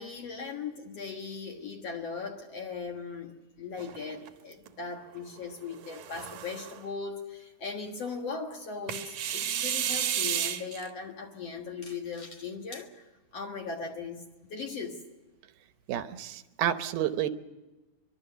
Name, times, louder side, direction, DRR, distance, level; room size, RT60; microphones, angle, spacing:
voice 1, 0.0-15.0, left 5 dB, 55° left, 2.1 m, -39 dB
sound 1, 3.8-4.7 5.7-6.8 8.9-10.9, right 10 dB, 65° right, 2.0 m, -32 dB
voice 2, 15.9-17.3, right 11 dB, 85° right, 2.9 m, -30 dB
23.5 x 23.0 x 6.8 m
omnidirectional pair, 4.3 m